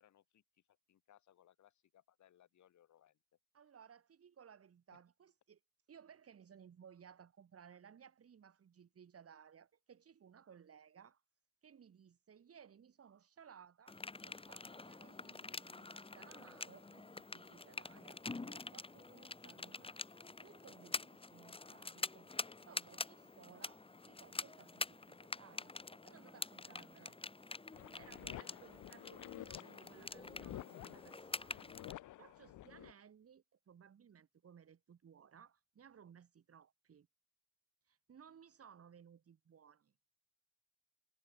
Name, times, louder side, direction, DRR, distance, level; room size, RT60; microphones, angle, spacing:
voice 1, 0.0-3.2 4.9-5.0 28.3-28.6, left 11 dB, 70° left, 5.9 m, -68 dB
voice 2, 3.5-5.6 5.9-11.2 11.6-14.0 14.2-20.0 20.4-22.3 22.7-27.2 27.9-31.6 32.2-37.1 37.9-39.9, right 7 dB, 50° right, 4.4 m, -61 dB
sound 1, 13.9-31.9, left 3 dB, 20° left, 1.9 m, -47 dB
sound 2, 27.7-32.9, left 15 dB, 85° left, 2.8 m, -52 dB
cardioid pair, 90°, 30 cm